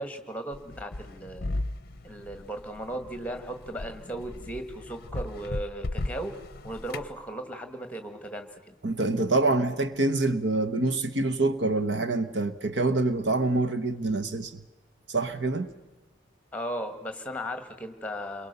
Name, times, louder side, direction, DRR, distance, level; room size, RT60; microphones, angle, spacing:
voice 1, 0.0-1.5 2.0-6.3 6.6-8.7 16.5-18.5, right 1 dB, 5° left, 1.7 m, -36 dB
sound 1, 0.5-7.1, left 2 dB, 50° left, 0.7 m, -36 dB
voice 2, 8.8-14.6 15.1-15.7, right 2 dB, 60° right, 1.1 m, -26 dB
29.0 x 22.5 x 6.8 m
head